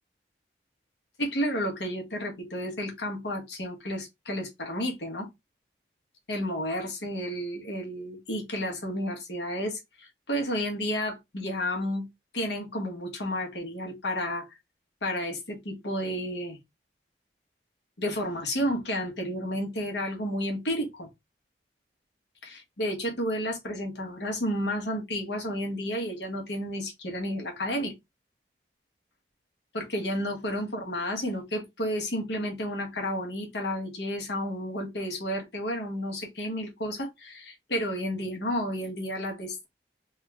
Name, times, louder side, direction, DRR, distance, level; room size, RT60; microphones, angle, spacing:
voice 1, 1.2-5.3 6.3-12.1 12.3-14.5 15.0-16.6 18.0-21.1 22.4-27.9 29.7-39.7, equal, 75° left, 1.3 m, -31 dB
3.5 x 2.4 x 3.3 m
head